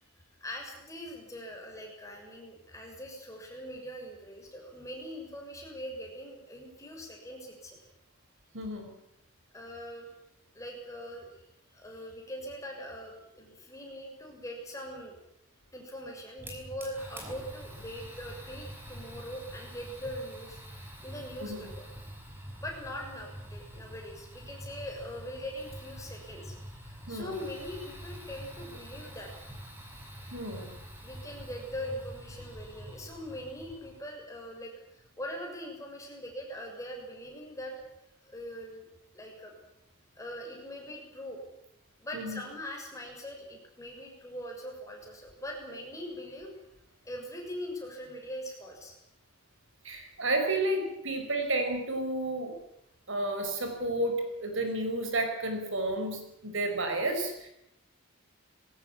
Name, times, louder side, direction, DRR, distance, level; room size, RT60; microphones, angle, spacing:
voice 1, 0.4-7.8 9.5-10.1 10.5-11.4 11.7-15.1 15.7-20.6 21.0-21.9 22.6-26.6 26.8-29.3 31.0-37.7 38.2-38.9 39.1-39.5 40.1-41.4 42.0-46.5 47.0-48.9 49.9-50.0, equal, 15° left, 1 dB, 6.8 m, -42 dB
voice 2, 8.5-9.0 21.4-21.7 27.1-27.4 30.3-30.8 42.1-42.4 49.8-52.5 53.1-57.5, right 2 dB, 65° right, 5 dB, 5.3 m, -31 dB
Fire, 16.4-34.0, equal, 10° right, 5.0 m, -46 dB
21.5 x 17.5 x 9.9 m, 0.80 s
head